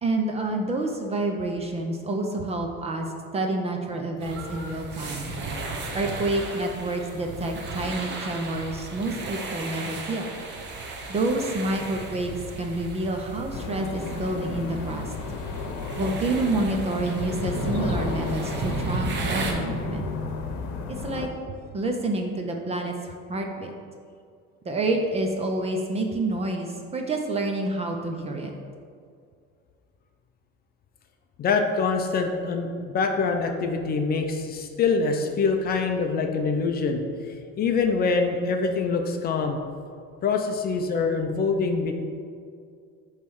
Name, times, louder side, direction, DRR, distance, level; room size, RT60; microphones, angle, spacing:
voice 1, 0.0-3.1 3.3-5.3 5.9-10.3 11.1-15.1 16.0-20.1 20.9-21.3 21.7-22.9 23.3-23.7 24.7-28.5, right 2 dB, 20° right, 2 dB, 0.5 m, -28 dB
sound 1, 4.2-19.5, right 3 dB, 40° right, 0.9 m, -34 dB
sound 2, 13.5-21.3, left 5 dB, 80° left, 0.9 m, -33 dB
voice 2, 31.4-37.0 37.6-39.6 40.2-41.9, left 4 dB, 30° left, 4 dB, 0.5 m, -24 dB
9.0 x 3.2 x 6.2 m, 2.2 s
cardioid pair, 180°, 29 cm